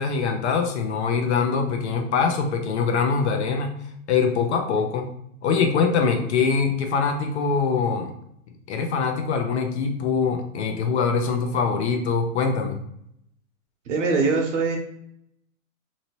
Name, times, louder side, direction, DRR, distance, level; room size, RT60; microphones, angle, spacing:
voice 1, 0.0-3.7 4.1-5.1 5.4-8.1 8.7-12.8, left 5 dB, 55° left, 4 dB, 0.6 m, -23 dB
voice 2, 13.9-14.8, right 4 dB, 60° right, 1 dB, 1.0 m, -22 dB
2.8 x 2.7 x 2.9 m, 0.74 s
hypercardioid pair, 160°, 42 cm